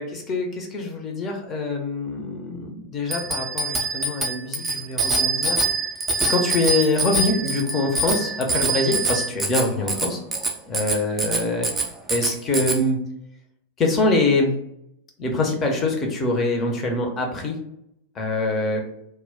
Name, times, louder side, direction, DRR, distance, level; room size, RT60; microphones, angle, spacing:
voice 1, 0.0-5.6 6.3-10.2 10.7-11.7 12.1-13.0 13.8-14.5 15.2-17.6 18.1-18.8, left 2 dB, 25° left, 2 dB, 0.6 m, -24 dB
Bicycle bell, 3.1-12.8, right 3 dB, 15° right, 0.5 m, -25 dB
2.2 x 2.1 x 3.6 m, 0.78 s
figure-of-eight pair, 90°, 0 cm